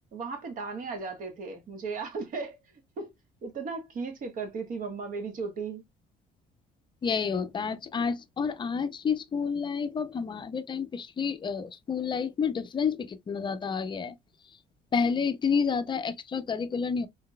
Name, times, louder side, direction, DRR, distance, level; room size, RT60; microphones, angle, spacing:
voice 1, 0.1-2.6 3.0-3.1 3.4-5.8, right 4 dB, 55° right, 1.3 m, -36 dB
voice 2, 7.0-14.1 14.9-17.1, left 6 dB, 30° left, 0.5 m, -29 dB
3.8 x 3.3 x 2.2 m
cardioid pair, 110°, 17 cm